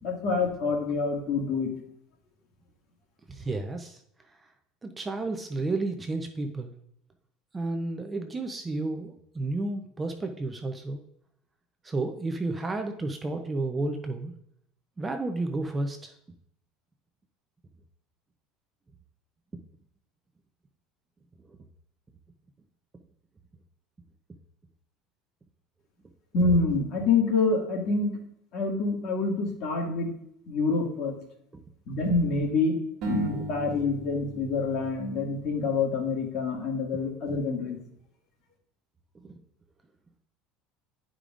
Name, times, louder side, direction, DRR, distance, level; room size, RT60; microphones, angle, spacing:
voice 1, 0.0-1.7 26.3-28.2 28.5-30.1 30.5-31.1 31.9-32.8 33.1-37.8, left 3 dB, 45° left, 0 dB, 2.0 m, -26 dB
voice 2, 3.3-4.0 4.8-6.7 7.5-11.0 11.8-14.3 15.0-16.1 21.5-21.6 33.3-33.4, right 2 dB, 15° right, 5 dB, 0.5 m, -32 dB
sound 1, 33.0-36.2, right 2 dB, 50° right, 1.6 m, -38 dB
11.0 x 5.0 x 2.5 m, 0.73 s
cardioid pair, 150°, 0 cm